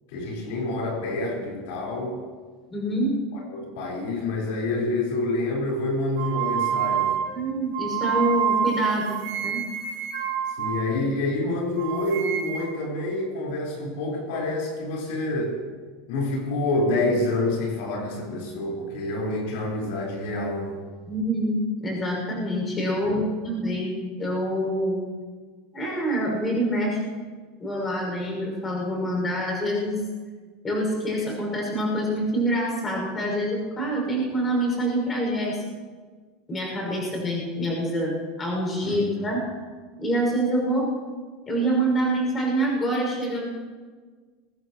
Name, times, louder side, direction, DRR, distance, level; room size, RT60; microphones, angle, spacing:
voice 1, 0.1-2.2 3.3-7.2 10.6-15.6 16.1-20.8 23.0-23.2 38.8-39.3, left 2 dB, 65° left, -3 dB, 4.6 m, -27 dB
voice 2, 2.7-3.1 7.3-9.6 21.1-23.9 24.2-25.0 25.7-27.0 27.6-30.0 30.6-35.6 36.5-39.4 40.0-40.9 41.5-43.5, right 1 dB, 15° left, -2 dB, 6.1 m, -26 dB
sound 1, 6.2-11.4 11.8-12.8, right 9 dB, 60° right, 4.1 m, -28 dB
23.5 x 18.5 x 3.1 m, 1.5 s
supercardioid pair, 175°, 0 cm